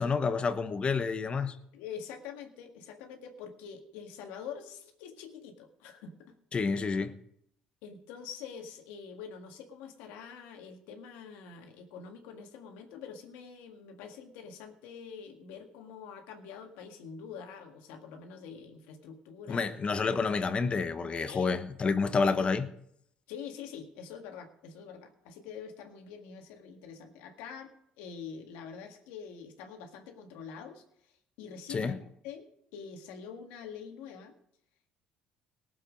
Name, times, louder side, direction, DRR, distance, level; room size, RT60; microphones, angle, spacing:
voice 1, 0.0-1.5 6.5-7.1 19.5-22.7 31.7-32.0, left 4 dB, 35° left, 1.0 m, -29 dB
voice 2, 1.7-6.4 7.8-19.7 21.3-21.5 23.3-30.8 31.4-32.0 32.2-32.5 32.7-34.3, left 7 dB, 90° left, 1.8 m, -45 dB
18.5 x 7.5 x 5.2 m
supercardioid pair, 90°, 3 cm